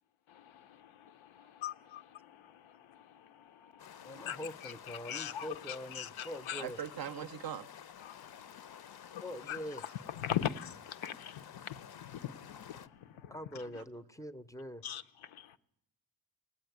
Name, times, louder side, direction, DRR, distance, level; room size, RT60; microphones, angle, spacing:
voice 1, 0.3-6.6 8.0-9.9 10.2-13.8 14.8-15.6, left 10 dB, 90° left, 0.8 m, -42 dB
sound 1, 3.8-12.9, left 9 dB, 55° left, 0.6 m, -52 dB
voice 2, 4.0-6.8 9.2-9.8 13.3-14.9, equal, 5° left, 0.5 m, -44 dB
voice 3, 6.6-7.7, right 9 dB, 50° right, 0.5 m, -40 dB
17.5 x 8.6 x 9.2 m
cardioid pair, 80°, 47 cm